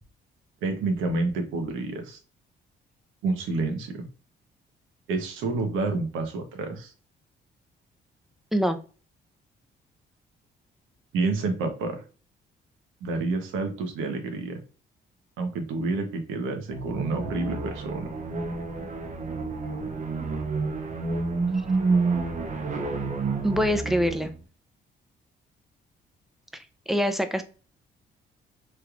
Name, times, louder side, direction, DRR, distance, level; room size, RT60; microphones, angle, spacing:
voice 1, 0.6-2.2 3.2-4.0 5.1-6.9 11.1-12.0 13.0-14.6 15.4-18.1, right 3 dB, 90° right, 5 dB, 0.9 m, -29 dB
sound 1, 16.7-24.4, right 4 dB, 40° right, 0.7 m, -29 dB
voice 2, 23.4-24.3 26.5-27.4, equal, ahead, 8 dB, 0.5 m, -25 dB
3.3 x 3.0 x 2.4 m, 0.36 s
cardioid pair, 90°, 20 cm